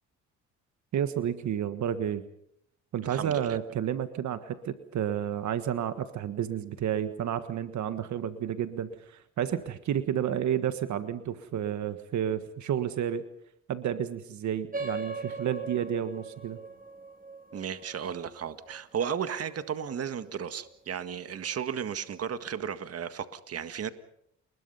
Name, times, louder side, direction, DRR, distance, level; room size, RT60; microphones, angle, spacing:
voice 1, 0.9-2.2 2.9-13.3 13.7-16.6, right 9 dB, 70° right, 10 dB, 1.6 m, -31 dB
voice 2, 3.1-3.6 17.5-23.9, right 8 dB, 50° right, 10 dB, 1.7 m, -34 dB
sound 1, 14.7-19.7, right 3 dB, 30° right, 3.6 m, -40 dB
29.5 x 21.5 x 5.6 m, 0.73 s
cardioid pair, 90°, 30 cm